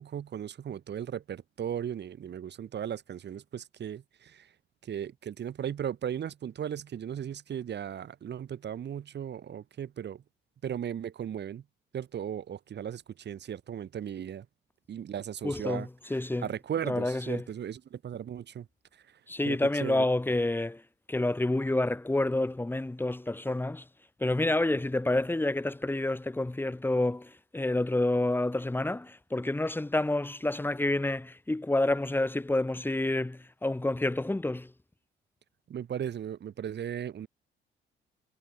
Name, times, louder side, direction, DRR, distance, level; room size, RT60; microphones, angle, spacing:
voice 1, 0.0-4.5 4.8-10.2 10.6-11.6 11.9-14.5 14.9-15.9 16.4-18.7 18.9-19.2 19.4-20.1 35.7-37.3, right 9 dB, 60° right, 4.0 m, -37 dB
voice 2, 15.4-16.5 16.9-17.4 19.3-20.8 21.1-23.8 24.2-34.7, left 2 dB, 10° left, 1.4 m, -28 dB
cardioid pair, 90°, 20 cm